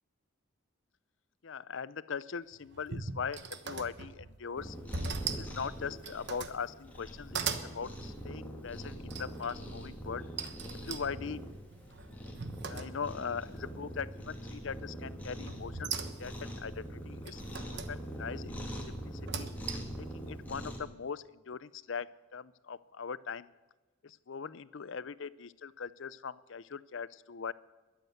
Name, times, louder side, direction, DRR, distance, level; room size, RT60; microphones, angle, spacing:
voice 1, 1.4-4.8 5.3-7.4 7.7-10.2 10.8-11.4 12.7-17.4 17.9-18.9 19.3-19.5 19.9-22.1 22.3-23.5 24.0-27.5, left 6 dB, 65° left, 18 dB, 0.5 m, -40 dB
sound 1, 2.5-4.4 4.9-5.5 5.9-6.6 7.0-7.7 9.1-9.6 10.4-13.3 13.6-14.1 15.5-16.5 17.2-17.9 19.1-20.0, right 5 dB, 55° right, 1.2 m, -40 dB
Cat, 4.6-20.8, equal, 10° left, 2.6 m, -43 dB
21.5 x 8.0 x 8.0 m, 1.2 s
head